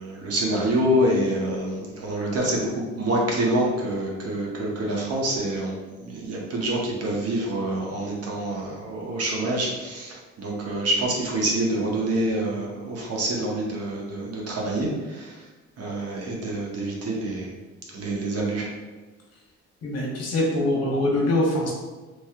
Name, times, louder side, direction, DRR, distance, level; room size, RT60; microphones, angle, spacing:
voice 1, 0.0-15.4 15.8-17.5 17.9-18.7, right 1 dB, 55° right, -2 dB, 0.9 m, -26 dB
voice 2, 19.8-21.7, left 1 dB, 55° left, -2 dB, 0.9 m, -23 dB
3.1 x 2.8 x 2.3 m, 1.3 s
cardioid pair, 90°, 30 cm